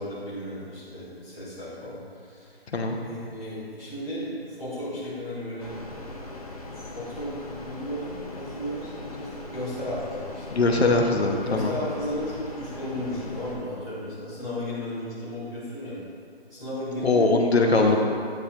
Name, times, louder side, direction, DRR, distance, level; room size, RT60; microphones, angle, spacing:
voice 1, 0.0-2.6 3.0-5.7 6.7-7.3 7.6-10.6 11.4-16.0 16.5-17.3 17.6-18.1, left 1 dB, 5° right, -19 dB, 0.8 m, -34 dB
sound 1, 5.6-13.6, left 2 dB, 35° left, 0.8 m, -40 dB
voice 2, 10.5-11.8 17.0-18.0, left 3 dB, 75° left, 2 dB, 1.1 m, -21 dB
9.7 x 7.6 x 2.6 m, 2.4 s
hypercardioid pair, 170°, 32 cm